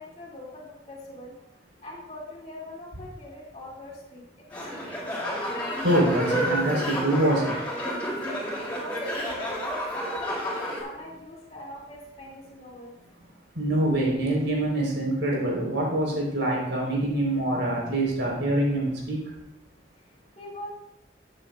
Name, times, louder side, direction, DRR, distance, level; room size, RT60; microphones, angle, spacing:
voice 1, 0.0-1.4 1.8-5.3 8.5-10.5 10.8-12.9 20.4-20.7, left 1 dB, 35° left, -3 dB, 2.3 m, -43 dB
sound 1, 4.5-10.8, equal, 10° left, 3.3 m, -30 dB
voice 2, 5.8-7.5 13.5-19.2, right 1 dB, 75° right, -2 dB, 3.9 m, -25 dB
13.0 x 8.9 x 2.4 m, 0.91 s
head